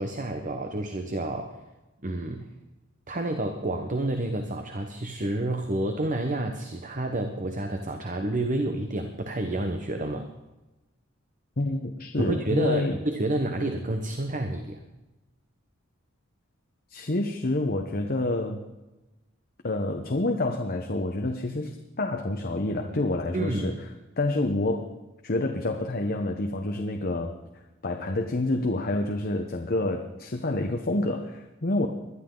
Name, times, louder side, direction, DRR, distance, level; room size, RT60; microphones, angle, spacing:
voice 1, 0.0-1.6 2.0-2.5 3.1-10.3 12.2-14.8 23.3-23.8, right 1 dB, 40° right, 6 dB, 1.1 m, -29 dB
voice 2, 11.6-13.0 16.9-18.6 19.6-23.9 24.2-24.9 25.2-27.4 27.8-31.9, left 2 dB, 45° left, 4 dB, 1.1 m, -28 dB
21.0 x 12.5 x 3.9 m, 1.1 s
head